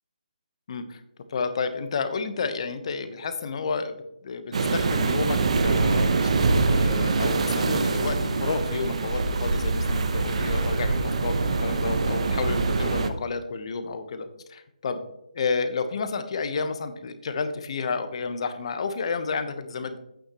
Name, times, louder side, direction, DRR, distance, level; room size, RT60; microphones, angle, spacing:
voice 1, 0.7-1.0 1.3-4.0 4.2-6.3 6.6-15.0 15.3-20.0, left 4 dB, 45° left, 9 dB, 1.1 m, -31 dB
sound 1, 4.5-13.1, right 3 dB, 55° right, 0.9 m, -24 dB
9.7 x 8.9 x 3.1 m, 0.85 s
figure-of-eight pair, 155°, 4 cm